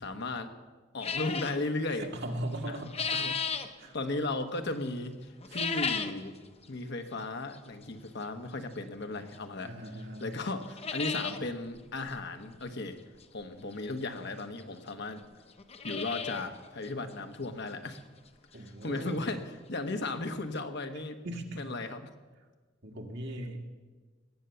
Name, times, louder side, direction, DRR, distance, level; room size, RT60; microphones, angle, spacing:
voice 1, 0.0-0.5 0.9-2.1 2.7-2.8 3.1-3.4 3.9-5.2 5.5-6.4 6.7-9.7 10.2-13.0 13.3-15.2 15.8-18.0 18.6-19.4 19.7-21.2 21.5-22.1, left 2 dB, 60° left, 7 dB, 1.2 m, -35 dB
sound 1, 1.0-1.6 2.5-3.7 5.4-6.2 6.6-6.7 7.5-7.6 9.3-9.4 9.9-10.0 10.2-10.3 10.6-11.4 11.8-11.9 12.1-12.2 13.7-13.8 14.6-14.7 14.9-15.0 15.5-16.5 16.8-16.9 17.4-17.5 18.0-18.1 19.8-19.9 20.0-20.1 20.6-20.7, left 5 dB, 30° left, 0.8 m, -34 dB
voice 2, 2.0-3.3 3.8-3.9 5.5-5.6 9.6-10.3 18.5-19.3 21.2-21.6 22.8-23.6, right 1 dB, 65° right, 2 dB, 1.8 m, -39 dB
20.0 x 8.4 x 6.9 m, 1.3 s
head